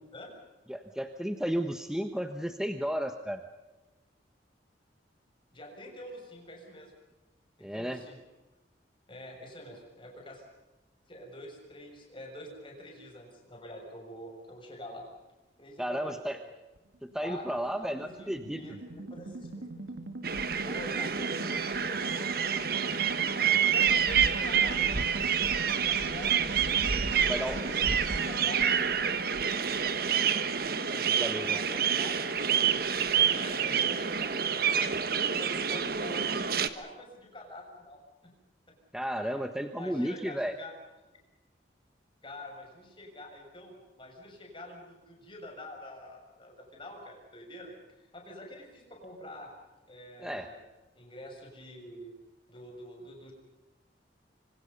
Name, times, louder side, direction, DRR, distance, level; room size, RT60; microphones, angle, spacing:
voice 1, 0.7-3.4 7.6-8.0 15.8-16.4 17.0-18.6 27.3-27.6 31.0-31.6 38.9-40.5 50.2-50.5, equal, 5° right, 6 dB, 1.2 m, -33 dB
voice 2, 5.5-6.9 7.6-8.2 9.1-10.5 11.1-15.1 15.6-16.5 17.2-19.7 20.6-22.8 23.5-25.2 25.7-26.3 26.9-30.4 30.9-38.3 38.7-38.8 39.2-39.4 39.8-40.7 42.2-49.5 49.9-50.6 51.0-52.1 52.5-53.3, left 1 dB, 30° left, 1 dB, 7.0 m, -46 dB
sound 1, 16.8-33.1, right 2 dB, 90° right, 2.0 m, -41 dB
sound 2, 20.2-36.7, right 7 dB, 55° right, 1.4 m, -28 dB
26.0 x 25.5 x 5.4 m, 1.1 s
head